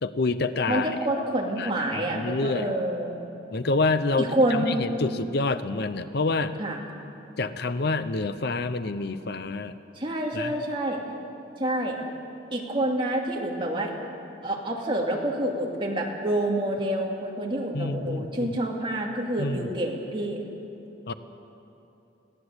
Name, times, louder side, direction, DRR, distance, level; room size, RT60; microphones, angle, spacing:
voice 1, 0.0-0.9 1.6-2.7 3.5-6.5 7.4-9.7 10.3-10.5 17.7-18.5 19.4-19.7 21.1-21.2, left 3 dB, 55° left, 12 dB, 0.7 m, -27 dB
voice 2, 0.7-3.2 4.2-4.8 6.6-6.8 10.0-11.0 11.6-12.0 12.5-13.9 14.4-20.4, right 1 dB, 25° right, -1 dB, 2.5 m, -27 dB
21.5 x 16.0 x 8.0 m, 3.0 s
head